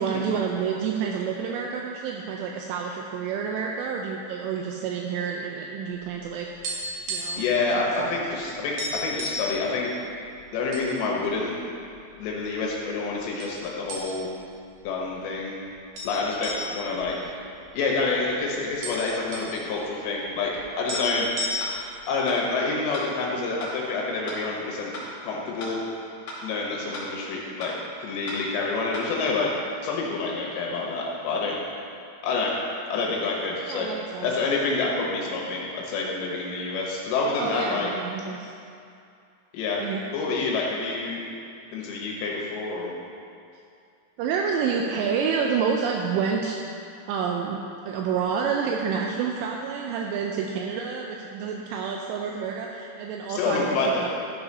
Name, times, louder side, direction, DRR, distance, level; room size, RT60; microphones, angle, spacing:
voice 1, 0.0-6.5 7.1-7.4 7.7-8.4 16.5-17.0 27.3-27.6 33.7-34.4 37.4-38.5 39.8-40.0 44.2-46.8 47.1-47.6 47.9-54.1, right 6 dB, 85° right, 1 dB, 2.6 m, -29 dB
sound 1, 6.1-7.5 7.8-8.0 8.3-8.4 8.8-9.5 10.2-10.9 11.3-11.4 12.1-12.7 13.4-13.6 13.9-14.4 14.8-14.9 15.9-18.0 18.3-18.4 18.6-19.5 20.6-20.7 20.9-21.9, equal, 60° right, 2.5 m, -33 dB
voice 2, 7.4-10.1 10.5-11.5 12.2-14.3 14.8-15.6 16.1-17.3 17.7-20.5 20.8-21.3 22.1-24.9 25.2-25.8 26.4-27.7 28.0-29.5 29.8-31.5 32.2-32.6 32.9-33.9 34.2-37.9 39.5-39.8 40.1-41.2 41.7-42.9 53.3-54.1, left 3 dB, 80° left, -2 dB, 3.3 m, -27 dB
sound 2, 20.9-21.1 21.6-21.7 22.3-22.4 22.9-23.1 23.6-23.7 24.3-24.4 24.9-25.1 25.6-25.7 26.3-26.4 26.9-27.1 27.6-27.7 28.3-28.4 28.9-29.1, left 1 dB, 50° left, 3.0 m, -36 dB
12.5 x 4.8 x 5.4 m, 2.5 s
omnidirectional pair, 5.2 m